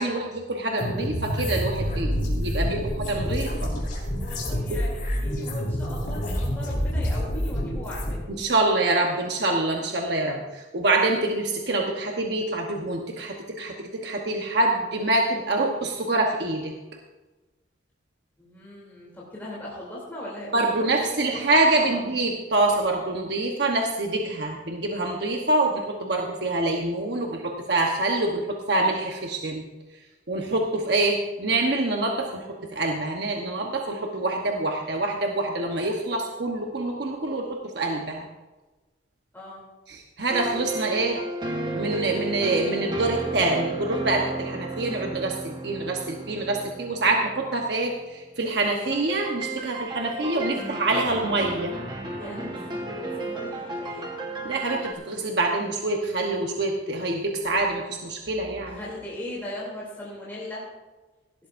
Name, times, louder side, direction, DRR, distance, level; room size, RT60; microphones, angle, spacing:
voice 1, 0.0-3.7 4.7-4.8 8.4-16.7 20.5-29.7 30.3-38.3 39.9-41.2 41.7-51.7 54.4-58.8, right 2 dB, 60° right, 1 dB, 1.0 m, -26 dB
sound 1, 0.8-8.1, equal, 45° left, 3.8 m, -28 dB
voice 2, 4.2-8.3 18.4-21.4 21.8-22.0 39.3-39.6 52.2-54.1 58.6-60.6, left 1 dB, 10° left, -6 dB, 3.0 m, -39 dB
sound 2, 40.3-48.1 48.9-54.9, right 2 dB, 25° right, 1.2 m, -33 dB
17.5 x 12.5 x 2.6 m, 1.2 s
head